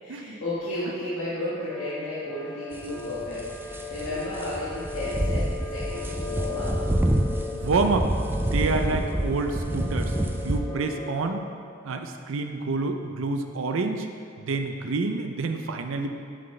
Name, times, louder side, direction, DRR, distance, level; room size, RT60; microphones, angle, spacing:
voice 1, 0.0-6.8, left 1 dB, 85° left, -11 dB, 1.7 m, -33 dB
sound 1, 1.7-11.3, left 4 dB, 15° left, 1.0 m, -37 dB
sound 2, 2.7-10.6, right 1 dB, 10° right, 0.4 m, -28 dB
voice 2, 7.5-8.1 8.4-10.1 10.4-11.5 11.8-14.1 14.4-16.1, right 3 dB, 80° right, 5 dB, 0.5 m, -28 dB
11.0 x 4.0 x 3.3 m, 2.4 s
head